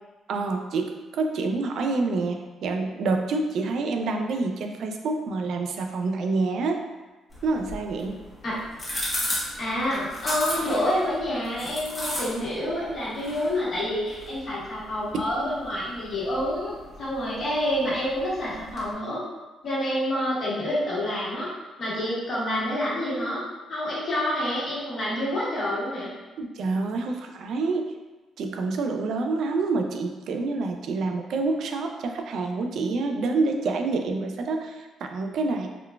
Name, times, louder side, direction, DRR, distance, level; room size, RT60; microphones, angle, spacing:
voice 1, 0.3-6.8 7.4-8.2 26.4-27.9 28.4-35.7, right 3 dB, 70° right, 4 dB, 0.3 m, -27 dB
sound 1, 7.3-18.9, left 1 dB, 25° left, 1.0 m, -36 dB
voice 2, 9.6-16.7 17.0-19.2 19.6-21.5 21.8-23.4 23.7-26.1, left 1 dB, 55° left, -8 dB, 1.3 m, -28 dB
3.7 x 2.3 x 2.2 m, 1.2 s
cardioid pair, 90°, 0 cm